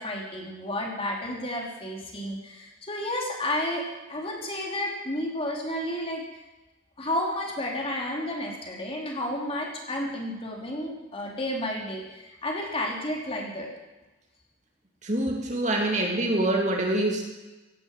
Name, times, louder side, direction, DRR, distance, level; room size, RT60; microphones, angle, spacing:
voice 1, 0.0-6.2 7.0-13.7, left 1 dB, 30° left, -1 dB, 3.3 m, -31 dB
voice 2, 15.0-17.2, right 1 dB, 40° right, 0 dB, 2.8 m, -25 dB
17.0 x 9.9 x 7.5 m, 1.1 s
head